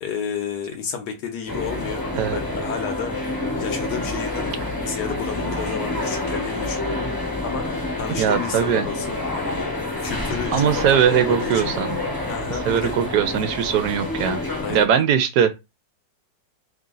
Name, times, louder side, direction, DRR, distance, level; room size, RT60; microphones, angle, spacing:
voice 1, 0.0-3.3 3.6-7.1 7.4-11.7 12.3-12.9 14.6-14.9, left 7 dB, 70° left, 1.4 m, -31 dB
sound 1, 1.5-14.9, left 2 dB, 15° left, 0.8 m, -28 dB
voice 2, 8.2-8.9 10.5-11.9 12.7-14.4 14.7-15.5, right 8 dB, 70° right, 1.2 m, -20 dB
3.3 x 2.8 x 3.7 m
omnidirectional pair, 1.9 m